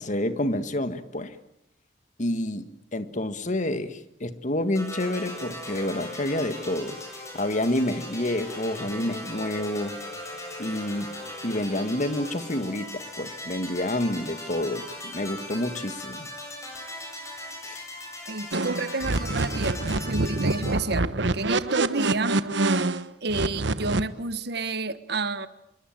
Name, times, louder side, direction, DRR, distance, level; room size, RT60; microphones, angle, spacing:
voice 1, 0.0-1.4 2.2-7.0 7.3-10.0 10.6-11.1 11.4-16.3 17.6-17.8, left 1 dB, 45° left, 10 dB, 1.8 m, -28 dB
sound 1, 4.7-20.7, left 1 dB, 15° left, 7.3 m, -39 dB
voice 2, 18.3-22.5 23.2-25.5, right 3 dB, 65° right, 13 dB, 1.3 m, -30 dB
sound 2, 18.5-24.0, right 2 dB, 85° right, 1.2 m, -26 dB
27.0 x 23.0 x 8.9 m, 0.78 s
head